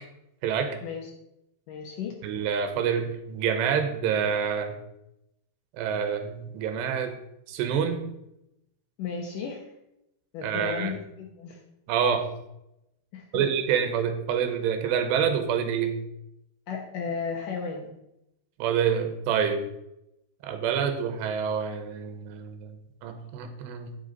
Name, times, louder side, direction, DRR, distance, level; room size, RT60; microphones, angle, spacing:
voice 1, 1.7-2.1 9.0-9.7 10.3-11.6 13.1-13.4 16.7-17.9, left 6 dB, 70° left, 1 dB, 2.2 m, -34 dB
voice 2, 2.2-4.8 5.7-7.2 7.5-8.0 10.4-10.9 11.9-12.3 13.3-16.0 18.6-19.6 20.4-24.0, right 7 dB, 85° right, 7 dB, 3.1 m, -27 dB
9.3 x 8.2 x 4.0 m, 0.85 s
omnidirectional pair, 4.9 m